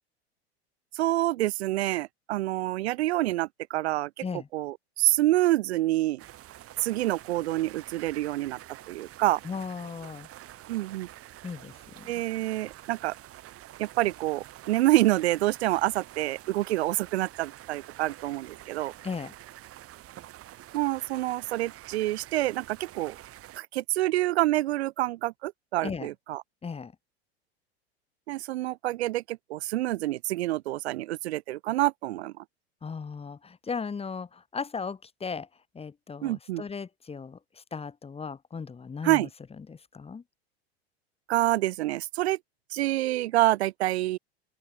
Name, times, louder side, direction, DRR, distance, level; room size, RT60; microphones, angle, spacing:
voice 1, 0.9-4.1 4.5-6.2 6.8-8.6 8.9-9.4 10.7-11.1 12.1-13.1 13.8-18.9 20.7-23.2 23.5-26.4 28.3-32.3 36.2-36.6 39.0-39.3 41.3-42.4 42.7-44.2, right 16 dB, 75° right, 1.3 m, -27 dB
sound 1, 6.2-23.6, right 14 dB, 45° right, 4.9 m, -48 dB
voice 2, 9.4-10.3 11.4-12.1 19.0-19.3 25.8-26.1 26.6-26.9 32.8-35.5 35.7-39.3 39.7-40.2, left 5 dB, 20° left, 1.8 m, -37 dB
open air
hypercardioid pair, 95°, 33 cm